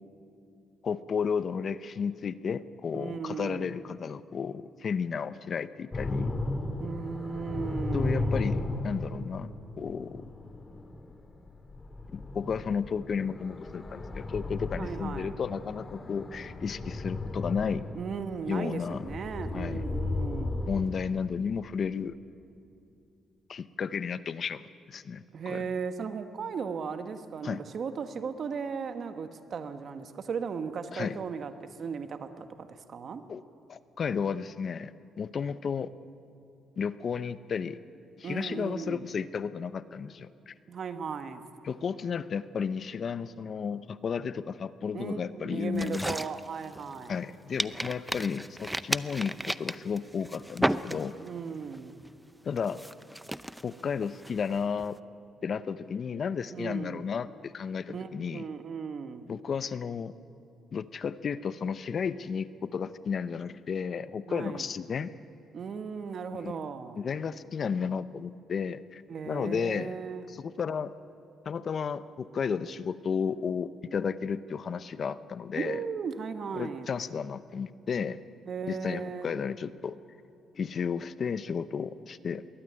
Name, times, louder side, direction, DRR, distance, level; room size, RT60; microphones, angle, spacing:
voice 1, 0.8-6.4 7.9-10.2 12.1-17.9 18.5-19.1 19.5-19.8 20.7-22.2 23.5-24.6 24.9-25.6 27.4-27.6 30.9-31.2 33.3-33.4 33.7-34.9 35.2-35.9 36.8-37.8 38.2-40.5 41.6-46.2 47.1-51.2 52.4-52.8 53.6-55.0 55.4-58.5 59.3-60.1 60.7-65.1 66.3-66.5 67.0-70.0 70.3-70.9 71.5-75.8 76.5-78.2 78.7-80.0 80.6-82.4, left 6 dB, 50° left, 15 dB, 0.7 m, -33 dB
voice 2, 2.9-3.7 6.8-8.5 14.8-15.3 17.9-20.5 25.3-33.2 38.2-39.1 40.7-41.4 44.9-47.2 51.2-52.0 56.5-57.1 57.9-59.3 64.3-64.7 65.5-67.0 69.1-70.3 75.5-76.9 78.5-79.3, right 6 dB, 55° right, 9 dB, 1.4 m, -36 dB
sound 1, 5.9-20.8, left 2 dB, 25° left, 2.1 m, -35 dB
sound 2, 45.7-47.2 47.6-51.4 51.7-52.1 52.6-54.9, right 1 dB, 5° right, 0.6 m, -34 dB
21.5 x 17.0 x 10.0 m, 2.6 s
cardioid pair, 90°, 0 cm